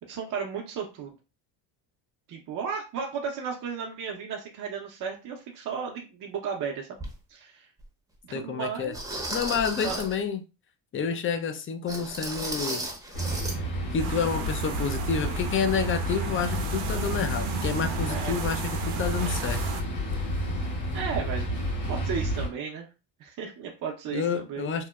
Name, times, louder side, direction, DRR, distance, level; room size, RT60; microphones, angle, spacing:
voice 1, 0.1-1.2 2.3-7.0 7.3-7.7 8.3-9.0 9.8-10.0 18.1-18.4 19.2-19.4 20.9-21.5 21.9-22.9 23.2-24.7, right 6 dB, 45° right, 0.6 m, -34 dB
sound 1, 7.0-7.1 7.8-7.9 8.9-10.2 11.9-13.6 13.9-14.0 14.5-14.6, right 1 dB, 5° right, 0.7 m, -34 dB
voice 2, 8.3-9.0 9.3-10.4 10.9-12.9 13.9-19.6 24.1-24.9, left 6 dB, 30° left, 0.4 m, -29 dB
sound 2, 13.1-22.5, equal, 60° left, 1.3 m, -31 dB
sound 3, 14.0-19.8, right 6 dB, 90° right, 0.6 m, -35 dB
2.9 x 2.0 x 2.2 m
supercardioid pair, 85°, 46 cm